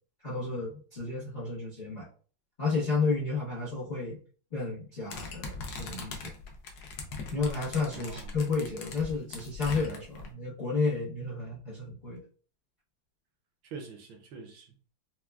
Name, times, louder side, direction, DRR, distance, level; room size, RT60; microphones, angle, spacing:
voice 1, 0.2-2.1 2.6-4.2 4.5-6.3 7.3-12.2, left 4 dB, 50° left, 0.5 m, -32 dB
sound 1, 5.1-10.3, left 3 dB, 70° left, 0.9 m, -40 dB
voice 2, 7.9-8.3 13.6-14.9, right 5 dB, 70° right, 1.3 m, -45 dB
4.4 x 2.2 x 2.3 m
omnidirectional pair, 2.4 m